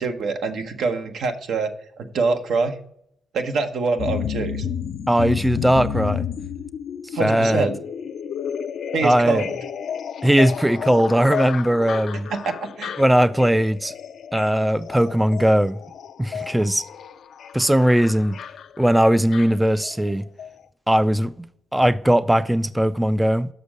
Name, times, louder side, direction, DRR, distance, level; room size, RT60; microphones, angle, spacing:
voice 1, 0.0-1.7 2.0-2.7 3.3-4.7 7.1-7.8 8.9-9.5 12.1-13.0, right 4 dB, 80° right, 0.9 m, -25 dB
sound 1, 4.0-20.1 20.4-20.5, left 8 dB, 70° left, 0.4 m, -31 dB
voice 2, 5.1-6.3 7.2-7.7 9.0-9.4 10.2-12.3 13.0-13.9 14.3-15.8 16.2-16.9 17.5-18.4 18.8-20.2 20.9-21.5 21.7-23.5, right 1 dB, 10° right, 0.3 m, -19 dB
6.7 x 6.2 x 5.2 m
cardioid pair, 70°, 0 cm